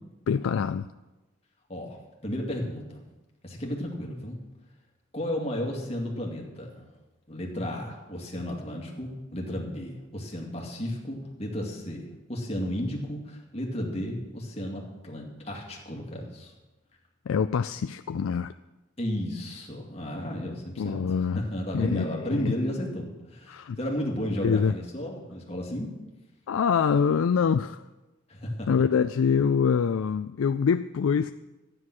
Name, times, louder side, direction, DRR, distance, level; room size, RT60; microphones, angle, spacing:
voice 1, 0.3-0.9 17.3-18.5 20.8-21.4 21.7-22.5 23.5-23.8 24.4-24.7 26.5-27.8 28.7-31.3, left 6 dB, 85° left, 0.4 m, -25 dB
voice 2, 1.7-3.0 3.4-4.4 5.1-6.8 7.3-16.5 19.0-21.0 21.3-26.0 28.3-28.7, equal, 30° left, 2.3 m, -33 dB
13.0 x 10.0 x 6.1 m
head